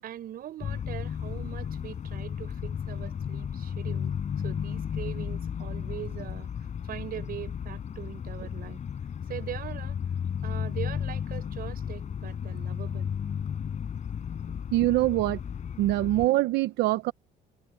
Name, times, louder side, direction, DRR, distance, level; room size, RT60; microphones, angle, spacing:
voice 1, 0.0-4.1 4.4-6.5 6.8-8.8 9.3-10.0 10.4-13.1, right 11 dB, 60° right, 6.8 m, -41 dB
sound 1, 0.6-16.3, left 8 dB, 45° left, 5.7 m, -34 dB
voice 2, 14.7-15.4 15.8-17.1, right 17 dB, 85° right, 0.8 m, -24 dB
cardioid pair, 110°, 17 cm